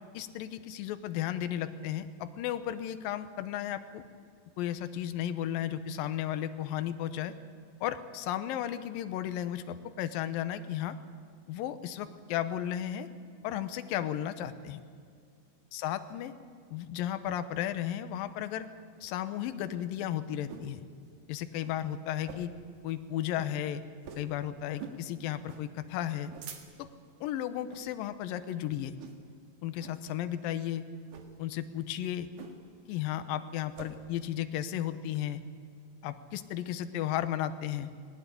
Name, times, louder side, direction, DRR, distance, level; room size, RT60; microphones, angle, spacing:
voice 1, 0.1-4.0 4.6-7.3 7.8-11.0 11.5-13.1 13.4-14.8 15.7-16.3 16.7-18.7 19.0-20.8 21.3-22.5 22.8-23.8 24.2-26.3 26.8-26.9 27.2-28.9 29.6-30.9 31.4-32.3 32.9-35.4 36.0-37.9, left 11 dB, 80° left, 11 dB, 2.6 m, -34 dB
sound 1, 19.5-20.8 21.1-21.2 21.5-21.7 22.2-22.6 23.0-23.1 23.3-23.5 24.0-24.3 24.8-25.0 25.4-25.7 26.1-27.0 27.6-27.9 28.3-28.6 29.0-29.4 29.8-30.0 31.0-31.3 32.4-32.8 33.1-33.9, right 6 dB, 60° right, 2.9 m, -47 dB
19.0 x 18.5 x 9.7 m, 2.2 s
omnidirectional pair, 4.1 m